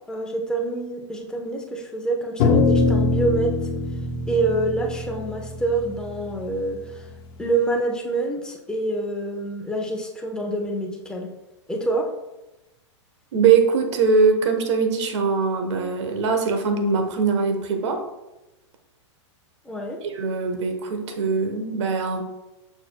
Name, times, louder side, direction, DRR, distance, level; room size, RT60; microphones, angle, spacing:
voice 1, 0.1-3.7 4.3-7.1 7.4-11.3 11.7-12.1 19.6-20.0, right 2 dB, 5° left, 0 dB, 1.0 m, -26 dB
sound 1, 2.4-6.9, left 3 dB, 50° left, 1.2 m, -23 dB
voice 2, 13.3-18.0 20.0-22.2, right 5 dB, 65° right, 5 dB, 1.2 m, -21 dB
6.9 x 6.5 x 2.3 m, 1.0 s
hypercardioid pair, 130°, 16 cm